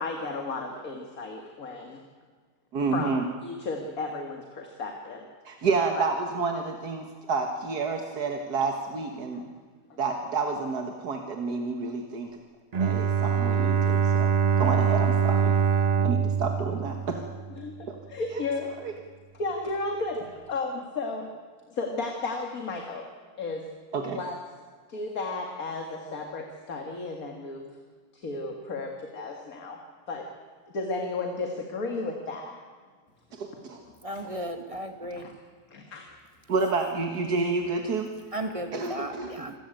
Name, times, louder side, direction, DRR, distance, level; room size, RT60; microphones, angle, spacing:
voice 1, 0.0-2.0 2.9-3.1 3.4-5.3 6.0-6.1 9.3-9.5 9.9-10.0 17.6-18.7 19.3-21.3 21.7-23.1 23.4-23.6 24.1-24.4 24.9-27.7 28.1-29.8 30.1-30.3 30.7-32.5 35.7-36.0, left 3 dB, 65° left, 3 dB, 2.4 m, -33 dB
voice 2, 2.7-3.2 5.5-9.4 10.0-12.3 12.8-14.3 14.6-15.5 16.0-17.2 17.9-18.0 18.8-18.9 23.9-24.2 36.5-38.1 38.7-39.3, right 4 dB, 85° right, 3 dB, 2.1 m, -29 dB
Bowed string instrument, 12.7-17.7, right 7 dB, 40° right, 0.6 m, -24 dB
voice 3, 34.0-35.3 38.3-39.5, right 1 dB, 20° right, 6 dB, 1.9 m, -35 dB
26.0 x 15.5 x 9.1 m, 1.5 s
omnidirectional pair, 1.7 m